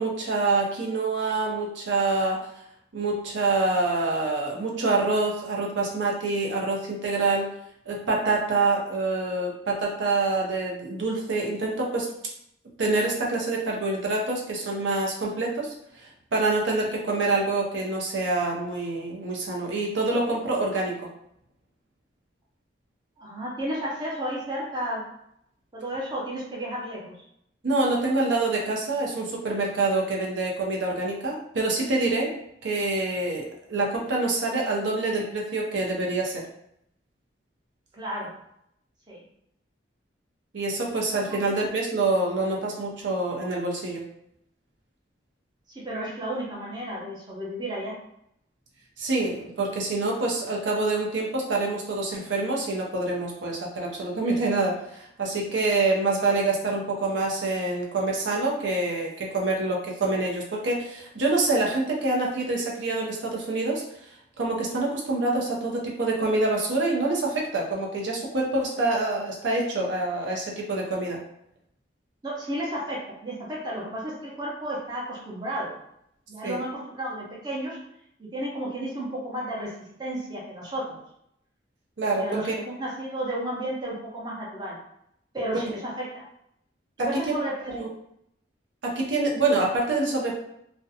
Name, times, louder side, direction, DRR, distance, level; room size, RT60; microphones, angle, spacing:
voice 1, 0.0-2.4 2.9-7.5 7.9-12.1 12.8-20.9 27.6-32.3 32.6-36.4 40.5-44.0 49.0-63.8 64.4-71.2 76.4-76.6 82.0-82.6 85.5-85.6 87.0-87.3 87.7-87.9 88.8-90.3, right 2 dB, 80° right, -2 dB, 0.6 m, -26 dB
voice 2, 23.2-25.0 25.7-27.2 37.9-38.3 39.1-39.2 41.3-41.4 45.7-47.9 72.2-75.7 76.3-77.8 78.2-79.7 80.0-81.0 82.2-84.8 85.3-86.2 87.0-87.9, right 1 dB, 25° right, -4 dB, 0.6 m, -32 dB
2.4 x 2.1 x 2.6 m, 0.74 s
head